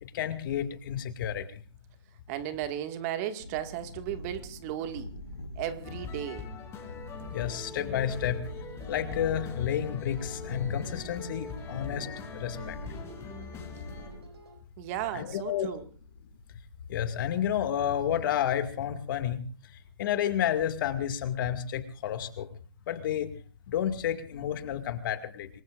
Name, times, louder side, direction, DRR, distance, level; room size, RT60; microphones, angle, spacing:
voice 1, 0.0-1.6 7.3-8.4 8.9-12.1 12.3-12.8 15.1-15.7 16.9-19.4 20.0-22.5 22.9-23.3 23.7-25.5, left 10 dB, 50° left, 9 dB, 2.2 m, -30 dB
voice 2, 2.3-5.1 5.6-6.5 14.8-15.8, right 11 dB, 35° right, 8 dB, 1.9 m, -35 dB
sound 1, 3.4-17.0, left 2 dB, 80° left, 5.3 m, -45 dB
sound 2, 5.8-14.2, left 5 dB, 20° left, 4.0 m, -43 dB
sound 3, 7.2-14.6, right 3 dB, 75° right, 4.7 m, -51 dB
27.0 x 21.5 x 2.5 m, 0.39 s
hypercardioid pair, 130°, 14 cm